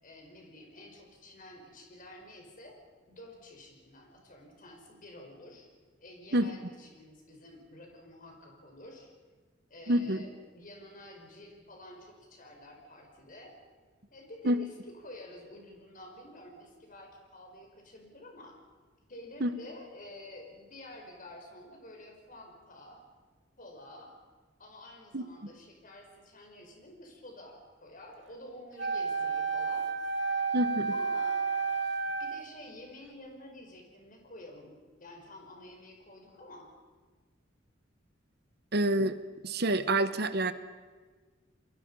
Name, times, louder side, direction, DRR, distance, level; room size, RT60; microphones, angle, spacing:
voice 1, 0.0-2.8 3.1-5.7 6.0-9.1 9.7-13.6 14.1-14.7 15.0-18.6 19.1-23.0 23.6-24.1 24.6-29.9 30.9-31.4 32.2-34.7 35.0-36.7, left 1 dB, 45° left, 2 dB, 5.3 m, -50 dB
voice 2, 9.9-10.2 14.4-14.6 19.4-19.5 25.1-25.2 30.5-30.9 38.7-39.2 39.4-40.5, right 1 dB, 60° right, 12 dB, 1.3 m, -27 dB
Wind instrument woodwind instrument, 28.8-32.6, right 5 dB, 75° right, 2.6 m, -31 dB
29.0 x 22.0 x 5.6 m, 1.4 s
head